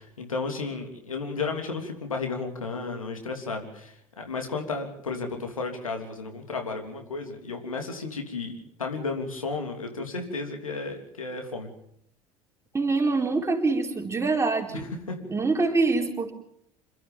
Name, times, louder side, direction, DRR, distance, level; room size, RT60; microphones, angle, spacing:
voice 1, 0.0-11.7 14.7-15.3, left 4 dB, 80° left, 4 dB, 3.2 m, -33 dB
voice 2, 12.7-14.9 15.3-16.3, right 3 dB, 15° right, 2 dB, 4.2 m, -25 dB
27.5 x 13.5 x 7.2 m, 0.72 s
figure-of-eight pair, 65°, 17 cm